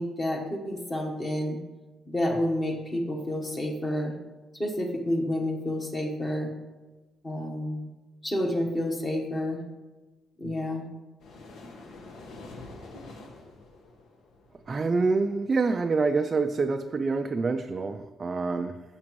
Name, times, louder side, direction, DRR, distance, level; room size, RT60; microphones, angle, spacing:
voice 1, 0.0-1.6 2.1-4.1 4.5-6.5 7.2-7.9 8.2-9.6 10.4-10.8, left 1 dB, 20° left, 1 dB, 1.2 m, -29 dB
sound 1, 11.2-15.6, left 2 dB, 70° left, 1.3 m, -47 dB
voice 2, 14.7-18.8, right 4 dB, 25° right, 6 dB, 0.3 m, -26 dB
14.5 x 6.0 x 3.1 m, 1.2 s
cardioid pair, 175°, 0 cm